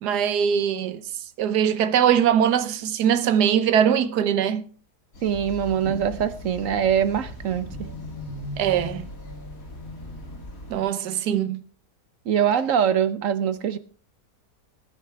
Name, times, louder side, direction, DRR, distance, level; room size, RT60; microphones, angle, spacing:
voice 1, 0.0-1.0 1.4-4.6 8.6-9.1 10.7-11.6, right 9 dB, 75° right, 1.4 m, -21 dB
sound 1, 5.1-10.8, left 1 dB, 55° left, 3.0 m, -38 dB
voice 2, 5.2-7.9 12.3-13.8, right 8 dB, 60° right, 1.0 m, -23 dB
18.5 x 10.0 x 3.4 m
omnidirectional pair, 1.8 m